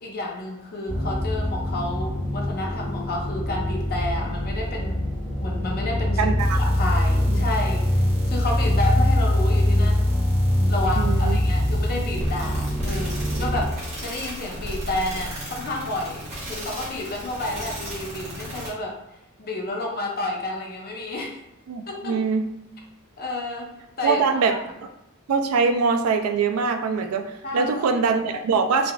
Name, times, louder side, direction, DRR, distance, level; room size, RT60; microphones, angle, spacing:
voice 1, 0.0-5.1 5.4-6.3 6.7-7.8 8.3-10.2 10.7-19.0 19.4-21.4 21.9-22.2 23.2-23.7 24.0-24.2 24.5-24.6 27.4-28.0, left 2 dB, 45° left, -1 dB, 0.6 m, -30 dB
sound 1, 0.9-13.6, left 1 dB, 10° left, 1.0 m, -23 dB
voice 2, 6.2-6.6 7.3-7.4 11.0-11.4 21.7-22.5 24.0-24.6 25.3-28.9, right 5 dB, 80° right, 7 dB, 0.4 m, -23 dB
sound 2, 6.4-18.7, equal, 30° right, 1.2 m, -35 dB
3.4 x 2.3 x 2.3 m, 0.90 s
head